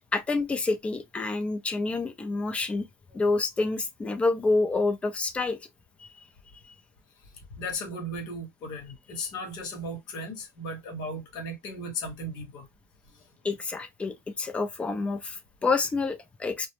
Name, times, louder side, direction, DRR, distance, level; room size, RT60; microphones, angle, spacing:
voice 1, 0.1-2.9 3.1-5.6 6.0-6.1 13.4-16.7, left 3 dB, 15° left, 0.5 m, -28 dB
voice 2, 7.5-12.7 13.1-13.2, left 1 dB, 50° left, 1.0 m, -36 dB
2.1 x 2.0 x 2.9 m
supercardioid pair, 120°, 9 cm